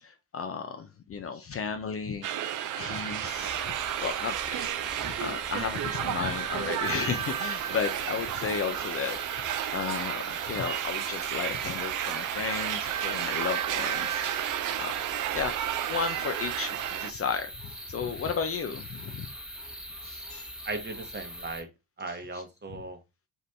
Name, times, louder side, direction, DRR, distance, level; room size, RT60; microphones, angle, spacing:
voice 1, 0.0-3.7 4.0-9.2 9.7-14.9 15.3-15.5 15.9-19.3 20.0-20.5 22.1-22.4, left 6 dB, 35° left, 0.5 m, -34 dB
sound 1, 2.2-17.1, right 11 dB, 50° right, 0.4 m, -32 dB
sound 2, 3.2-21.6, equal, ahead, 0.9 m, -43 dB
voice 2, 20.7-21.7 22.0-23.0, right 3 dB, 25° right, 0.9 m, -37 dB
2.8 x 2.5 x 3.3 m
supercardioid pair, 60°, 41 cm